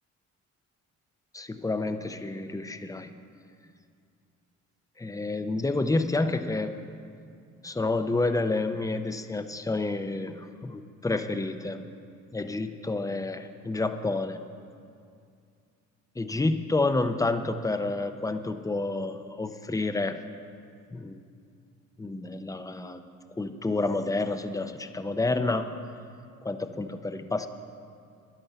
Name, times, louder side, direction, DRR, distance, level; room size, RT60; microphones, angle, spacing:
voice 1, 1.3-3.1 5.0-6.8 7.6-11.8 12.3-14.4 16.2-20.2 20.9-21.2 22.0-23.0 23.3-25.7 26.4-27.5, left 2 dB, 10° left, 9 dB, 0.7 m, -29 dB
10.5 x 10.0 x 6.8 m, 2.4 s
cardioid pair, 90°, 30 cm